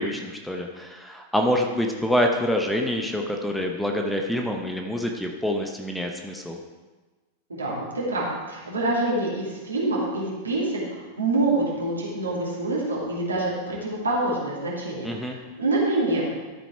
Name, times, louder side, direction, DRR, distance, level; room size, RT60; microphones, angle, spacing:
voice 1, 0.0-6.6 15.0-15.4, left 1 dB, 5° left, 2 dB, 0.9 m, -26 dB
voice 2, 7.5-16.2, right 2 dB, 75° right, -5 dB, 2.5 m, -26 dB
13.0 x 6.2 x 4.5 m, 1.3 s
figure-of-eight pair, 90°, 0 cm